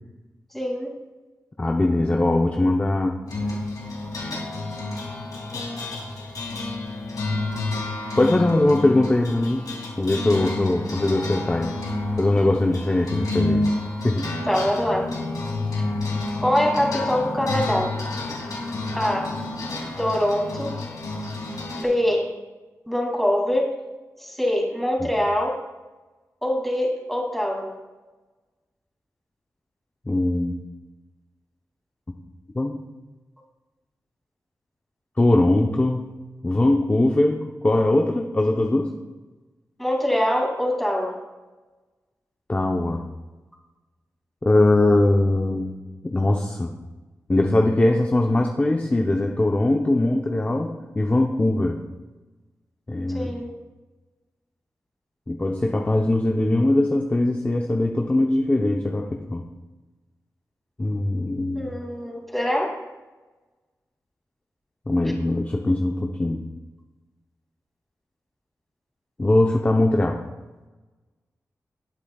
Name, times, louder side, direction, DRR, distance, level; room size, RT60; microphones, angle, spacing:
voice 1, 0.5-1.0 14.5-15.1 16.4-17.9 18.9-19.4 20.0-20.8 21.7-22.4 22.9-23.8 24.2-25.6 26.4-27.8 39.8-41.2 53.1-53.5 61.5-62.8, equal, 5° left, -1 dB, 2.5 m, -24 dB
voice 2, 1.6-3.2 8.2-9.7 10.0-11.7 12.2-13.6 14.0-14.3 25.0-25.1 30.1-30.6 32.6-32.8 35.2-36.1 36.4-38.9 42.5-43.0 44.4-45.8 46.0-46.7 47.3-51.8 52.9-53.3 55.3-59.4 60.8-61.7 64.9-66.5 69.2-70.2, left 2 dB, 25° left, 1 dB, 0.7 m, -21 dB
sound 1, 3.3-21.8, left 2 dB, 80° left, 2.8 m, -29 dB
18.0 x 8.6 x 2.4 m, 1.2 s
wide cardioid pair, 75°, 6 cm